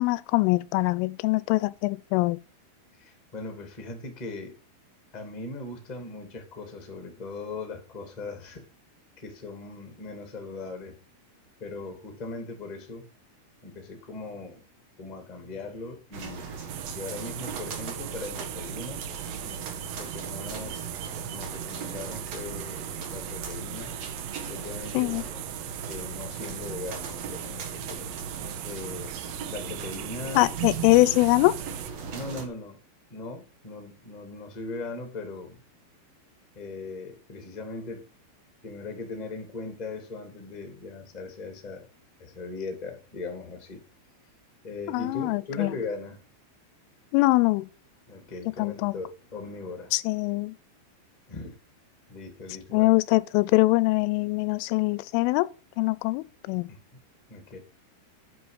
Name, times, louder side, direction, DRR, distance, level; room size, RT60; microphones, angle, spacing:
voice 1, 0.0-2.4 24.9-25.2 30.4-31.6 44.9-45.7 47.1-47.7 48.6-48.9 49.9-50.5 52.7-55.5 55.8-56.7, left 21 dB, 90° left, 3.1 m, -23 dB
voice 2, 3.0-4.5 5.1-8.6 9.2-11.0 11.6-13.0 13.6-14.6 15.0-16.5 16.9-19.0 19.4-19.6 19.9-20.9 21.2-23.9 24.5-28.1 28.6-29.2 29.5-30.5 32.1-32.8 33.1-35.6 36.5-38.0 38.6-41.8 42.2-43.8 44.6-46.2 48.1-49.9 51.3-51.6 52.1-52.9 56.7-56.8 57.3-57.6, left 3 dB, 20° left, 1.1 m, -39 dB
sound 1, 16.1-32.5, right 6 dB, 65° right, 1.7 m, -38 dB
sound 2, 16.7-31.9, right 15 dB, 80° right, 2.5 m, -40 dB
9.6 x 5.5 x 5.0 m
omnidirectional pair, 5.6 m